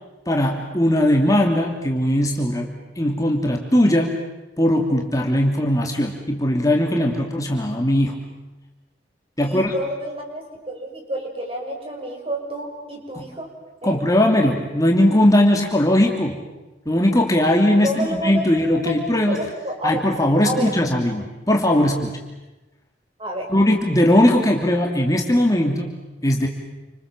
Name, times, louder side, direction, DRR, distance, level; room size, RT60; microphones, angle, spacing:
voice 1, 0.3-2.7 3.0-4.2 4.6-8.2 9.4-9.7 13.1-13.2 13.8-16.3 16.9-19.4 19.8-22.2 23.5-25.9 26.2-26.5, left 1 dB, 20° left, 1 dB, 2.8 m, -19 dB
voice 2, 9.4-13.5 13.8-14.0 17.8-20.0 20.4-20.7 23.2-23.5, equal, 35° right, 1 dB, 6.5 m, -29 dB
29.5 x 26.5 x 7.5 m, 1.1 s
head